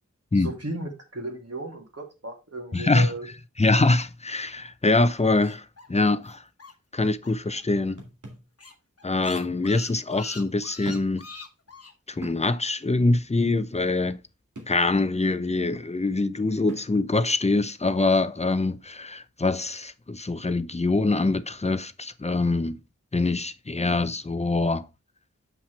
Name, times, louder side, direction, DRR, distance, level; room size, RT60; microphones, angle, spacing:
voice 1, 0.3-3.3, right 2 dB, 55° right, 2.3 m, -35 dB
voice 2, 2.7-3.1 3.6-6.4 6.9-8.0 9.0-11.2 12.1-14.2 14.7-22.8 23.1-24.9, left 2 dB, 20° left, 0.6 m, -24 dB
sound 1, 5.1-7.6 7.9-8.0 8.3-8.4 8.6-11.9, left 3 dB, 55° left, 1.1 m, -43 dB
sound 2, 8.0-8.5 9.6-9.7 10.8-11.3 11.7-11.8 12.2-12.5 14.6-14.8 16.7-17.0, right 1 dB, 90° right, 2.0 m, -40 dB
7.3 x 5.8 x 3.3 m
wide cardioid pair, 55°, 29 cm